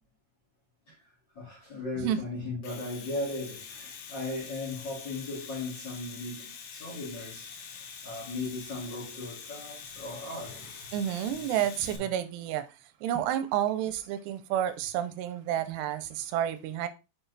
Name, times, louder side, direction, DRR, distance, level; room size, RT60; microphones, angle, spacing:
voice 1, 0.9-11.0 11.3-11.4 11.8-12.3, left 2 dB, 35° left, 2.0 m, -38 dB
Domestic sounds home sounds, 2.5-12.0, left 6 dB, 75° left, 1.8 m, -45 dB
voice 2, 10.9-12.6 13.0-16.9, right 11 dB, 85° right, 2.7 m, -30 dB
6.5 x 4.0 x 3.9 m
omnidirectional pair, 4.8 m